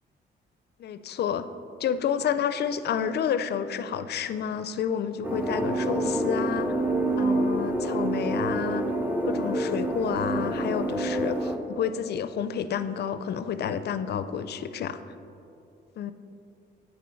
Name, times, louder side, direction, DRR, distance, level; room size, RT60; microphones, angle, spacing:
voice 1, 0.8-1.5 1.8-6.7 7.2-8.9 9.3-15.0 16.0-16.1, left 8 dB, 55° left, 12 dB, 0.4 m, -30 dB
sound 1, 5.2-11.6, right 1 dB, 10° right, 0.8 m, -27 dB
8.6 x 5.3 x 4.4 m, 2.7 s
cardioid pair, 90°, 20 cm